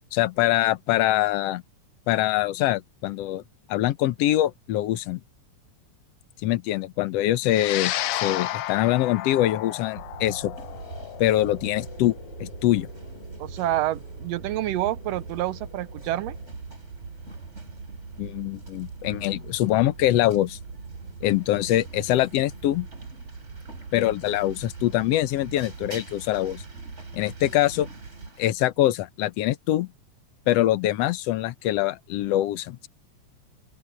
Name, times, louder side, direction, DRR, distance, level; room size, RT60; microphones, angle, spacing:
voice 1, 0.1-1.6 2.1-3.4 3.7-5.2 6.4-7.9 8.2-10.5 11.2-12.1 12.4-12.9 18.2-20.6 21.2-22.9 23.9-26.6 27.1-27.9 28.4-29.9 30.5-32.9, left 14 dB, 65° left, 1.7 m, -24 dB
sound 1, 7.5-16.0, left 13 dB, 85° left, 1.2 m, -34 dB
sound 2, 9.9-28.3, right 4 dB, 55° right, 4.4 m, -41 dB
sound 3, 10.6-28.5, right 2 dB, 20° right, 4.3 m, -51 dB
voice 2, 13.4-16.4, right 14 dB, 85° right, 1.5 m, -28 dB
open air
omnidirectional pair, 3.5 m